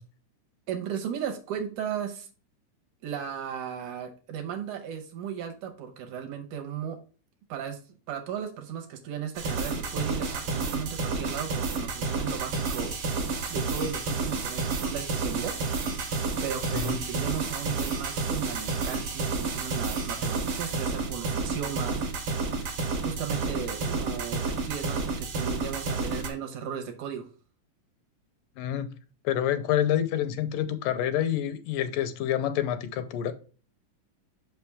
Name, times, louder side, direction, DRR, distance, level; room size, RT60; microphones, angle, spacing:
voice 1, 0.7-2.3 3.0-7.0 7.5-7.8 8.1-13.2 13.5-16.1 16.4-22.0 22.6-27.3, right 8 dB, 70° right, 2.2 m, -36 dB
sound 1, 9.4-26.3, right 4 dB, 50° right, 1.9 m, -30 dB
voice 2, 28.6-28.9 29.2-33.3, left 10 dB, 80° left, 2.2 m, -27 dB
5.9 x 5.5 x 3.5 m
omnidirectional pair, 3.9 m